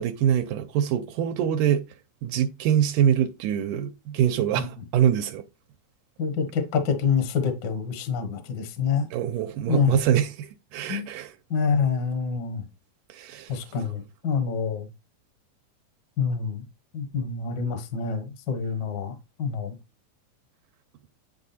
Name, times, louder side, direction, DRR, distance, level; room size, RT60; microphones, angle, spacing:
voice 1, 0.0-1.8 2.2-5.5 9.1-11.3 13.1-13.6, right 10 dB, 80° right, 2.2 m, -24 dB
voice 2, 6.2-9.1 9.7-10.0 10.9-11.0 11.5-12.6 13.5-14.9 16.2-16.6 16.9-19.7, left 6 dB, 50° left, 1.3 m, -26 dB
9.7 x 3.6 x 4.2 m
omnidirectional pair, 3.7 m